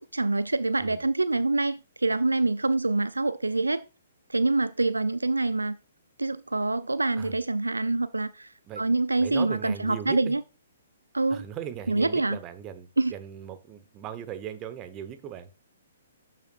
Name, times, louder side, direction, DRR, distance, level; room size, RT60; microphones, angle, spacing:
voice 1, 0.1-3.9 4.3-5.8 6.2-10.4 11.1-11.5 11.9-12.4 13.0-13.1, right 2 dB, 80° right, 0.4 m, -26 dB
voice 2, 9.2-10.4 11.3-15.5, right 9 dB, 25° right, 1.1 m, -38 dB
12.0 x 7.5 x 2.5 m
figure-of-eight pair, 120°, 0 cm